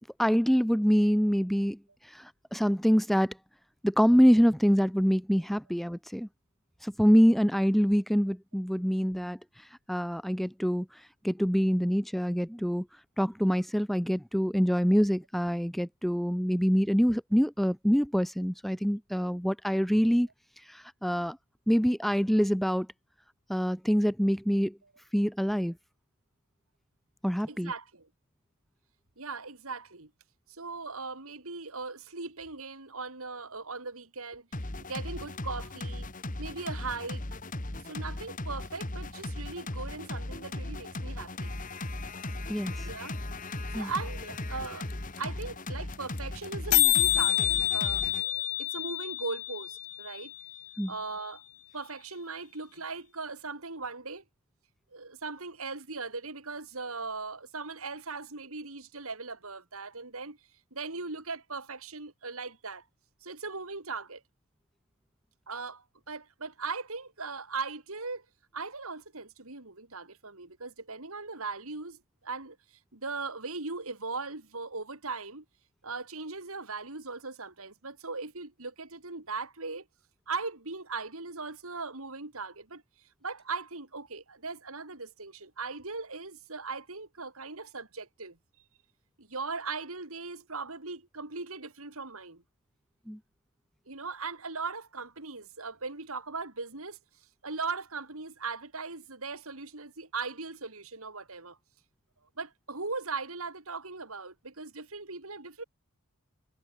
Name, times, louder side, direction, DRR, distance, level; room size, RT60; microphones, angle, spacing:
voice 1, 0.2-1.8 2.1-3.3 3.8-6.3 6.8-9.4 9.9-10.9 11.2-12.9 13.2-20.3 20.7-21.4 21.7-22.9 23.5-24.8 25.1-25.7 27.2-27.7 42.5-42.9 43.7-43.9 50.8-50.9 93.1-93.2, equal, ahead, 1.0 m, -25 dB
voice 2, 27.5-28.1 29.2-30.1 30.5-34.5 34.8-36.1 36.4-37.2 37.8-41.5 42.8-43.2 43.7-44.9 45.2-50.3 50.9-51.4 51.7-54.2 54.9-60.4 60.7-62.8 63.2-64.2 65.5-68.2 68.5-72.6 72.9-75.4 75.8-79.8 80.3-82.8 83.2-88.4 89.2-92.4 93.9-97.0 97.4-101.6 102.4-105.6, right 4 dB, 70° right, 3.4 m, -39 dB
sound 1, 34.5-48.2, left 1 dB, 35° left, 1.9 m, -37 dB
sound 2, 44.6-44.7 44.9-45.0 45.2-45.4 45.7-45.8 45.9-46.2 46.4-46.5 46.7-50.7, left 18 dB, 85° left, 1.4 m, -27 dB
head